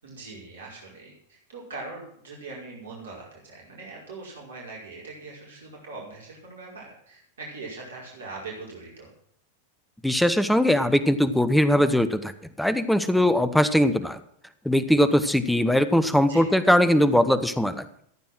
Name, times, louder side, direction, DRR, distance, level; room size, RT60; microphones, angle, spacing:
voice 1, 0.0-9.1 16.2-16.5, right 3 dB, 65° right, -3 dB, 5.2 m, -41 dB
voice 2, 10.0-12.3 12.6-14.2 14.6-17.9, equal, ahead, 11 dB, 1.0 m, -20 dB
15.0 x 9.3 x 6.2 m, 0.67 s
figure-of-eight pair, 90°, 0 cm